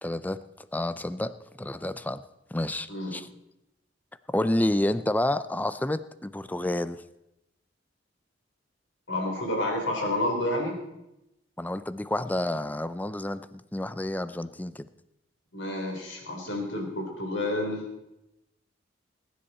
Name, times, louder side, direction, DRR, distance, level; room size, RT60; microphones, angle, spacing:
voice 1, 0.0-0.4 0.7-2.2 2.5-3.3 4.3-7.0 11.6-14.9, left 1 dB, 10° left, 14 dB, 0.4 m, -29 dB
voice 2, 9.1-10.8 15.5-17.8, left 1 dB, 80° left, 0 dB, 4.1 m, -29 dB
20.0 x 10.0 x 4.3 m, 0.89 s
head